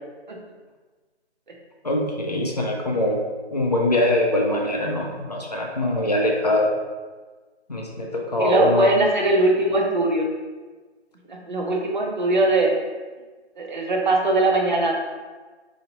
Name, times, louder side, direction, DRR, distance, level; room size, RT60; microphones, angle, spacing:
voice 1, 1.8-3.2 3.5-6.7 7.7-8.9, left 1 dB, 35° left, 0 dB, 0.5 m, -23 dB
voice 2, 8.4-10.3 11.3-12.7 13.6-14.9, right 2 dB, 45° right, 0 dB, 0.7 m, -21 dB
4.3 x 2.8 x 2.9 m, 1.3 s
hypercardioid pair, 175°, 34 cm